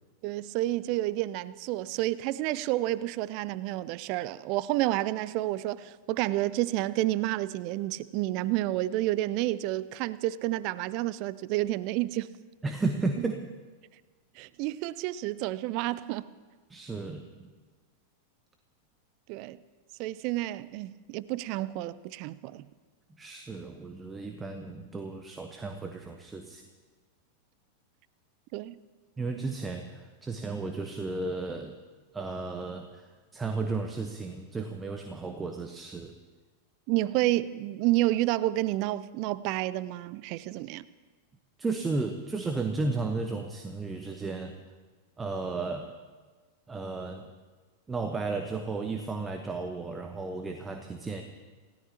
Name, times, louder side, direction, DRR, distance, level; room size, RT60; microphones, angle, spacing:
voice 1, 0.2-12.3 14.4-16.3 19.3-19.6 20.0-22.7 28.5-28.8 36.9-40.8, right 16 dB, 45° right, 18 dB, 0.6 m, -30 dB
voice 2, 12.6-13.4 16.7-17.5 23.2-26.6 29.2-31.7 32.1-36.1 41.6-44.6 45.2-45.9 46.7-47.3 47.9-51.2, right 3 dB, 15° right, 5 dB, 1.2 m, -34 dB
28.5 x 16.5 x 3.0 m, 1.4 s
figure-of-eight pair, 90°, 0 cm